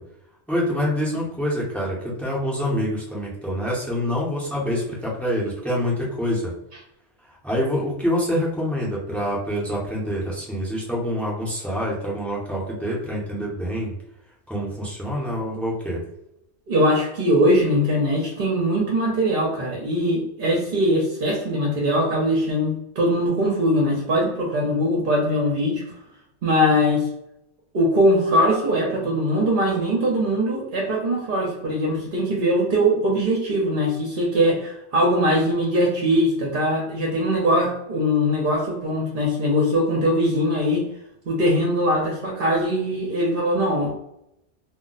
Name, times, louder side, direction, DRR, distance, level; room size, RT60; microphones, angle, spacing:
voice 1, 0.5-6.5 7.3-13.9 14.5-16.0, equal, ahead, -4 dB, 0.5 m, -26 dB
voice 2, 16.7-25.8 26.4-27.1 27.7-40.9 41.3-43.9, equal, 55° right, -2 dB, 0.8 m, -21 dB
2.2 x 2.1 x 3.8 m, 0.83 s
omnidirectional pair, 1.2 m